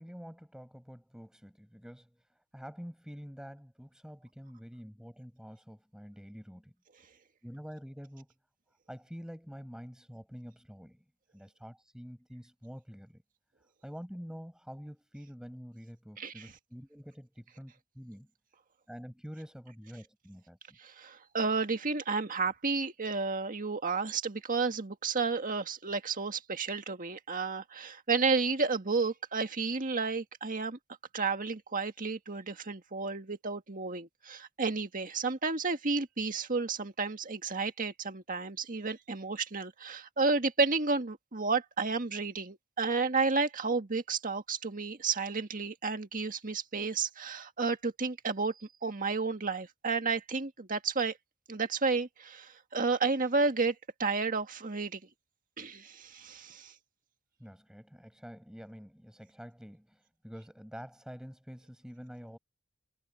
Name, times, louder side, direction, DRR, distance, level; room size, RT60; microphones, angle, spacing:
voice 1, 0.0-2.2 2.5-6.7 7.4-8.3 8.9-11.0 11.3-13.2 13.8-18.3 18.9-20.8 57.4-62.4, equal, 5° right, 7.0 m, -47 dB
voice 2, 16.2-16.5 20.8-30.8 31.1-48.5 48.8-51.1 51.5-55.0 55.6-56.7, right 4 dB, 40° right, 1.8 m, -31 dB
head